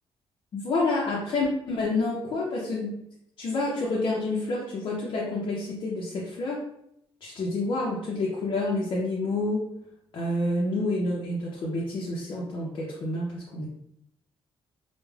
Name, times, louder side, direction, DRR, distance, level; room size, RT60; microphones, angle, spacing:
voice 1, 0.5-3.0 3.4-6.6 7.2-9.7 10.1-13.7, left 2 dB, 55° left, -4 dB, 0.5 m, -28 dB
2.3 x 2.1 x 3.1 m, 0.77 s
cardioid pair, 120°, 10 cm